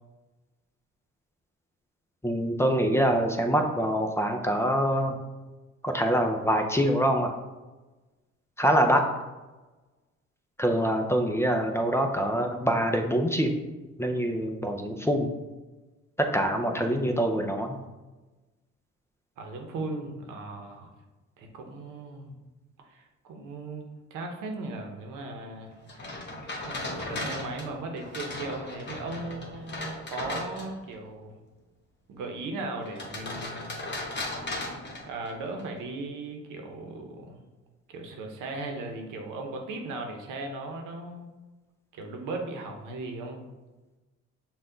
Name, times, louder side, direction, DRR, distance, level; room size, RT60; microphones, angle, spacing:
voice 1, 2.2-5.2 5.8-7.3 8.6-9.0 10.6-13.6 14.0-15.3 16.3-17.8, equal, 10° left, 4 dB, 0.5 m, -25 dB
voice 2, 19.4-20.9 21.4-22.4 22.9-23.8 24.1-26.4 26.7-31.4 32.1-33.8 35.1-37.4 37.9-41.3 41.9-43.4, right 2 dB, 90° right, 3 dB, 0.8 m, -37 dB
sound 1, 25.9-30.9 32.9-35.6, left 2 dB, 35° left, 1.0 m, -36 dB
5.7 x 2.4 x 3.8 m, 1.2 s
cardioid pair, 90°, 30 cm